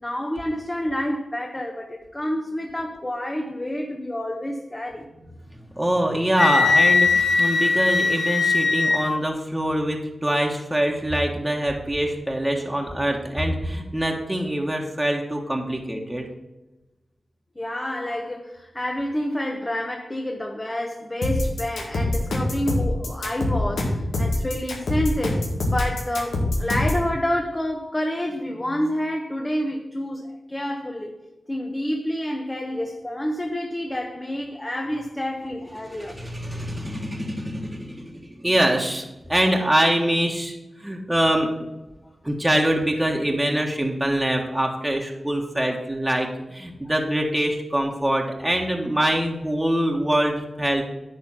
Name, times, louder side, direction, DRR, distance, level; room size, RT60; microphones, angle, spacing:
voice 1, 0.0-5.0 17.6-25.4 25.7-31.1 31.5-36.2 42.0-42.1, left 1 dB, 25° left, 2 dB, 1.2 m, -28 dB
voice 2, 5.7-16.3 35.8-41.7 42.2-50.8, right 1 dB, 15° right, 0 dB, 1.5 m, -24 dB
Wind instrument woodwind instrument, 6.4-9.2, left 4 dB, 60° left, 1.0 m, -20 dB
sound 1, 21.2-27.0, left 2 dB, 85° left, 1.9 m, -24 dB
10.5 x 3.6 x 7.3 m, 0.99 s
cardioid pair, 40°, 0 cm